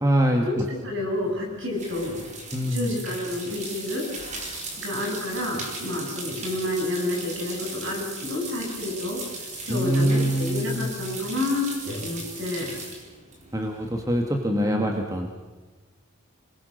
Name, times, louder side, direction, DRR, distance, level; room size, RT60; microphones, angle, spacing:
voice 1, 0.0-0.6 2.5-2.9 9.7-10.9 13.5-15.3, equal, 15° right, 3 dB, 1.6 m, -24 dB
voice 2, 0.8-2.2 2.6-4.0 4.8-9.2 9.6-12.8 14.5-14.9, left 1 dB, 60° right, 0 dB, 7.3 m, -29 dB
sound 1, 1.0-14.2, right 2 dB, 35° right, 4.3 m, -38 dB
28.0 x 20.0 x 6.5 m, 1.3 s
head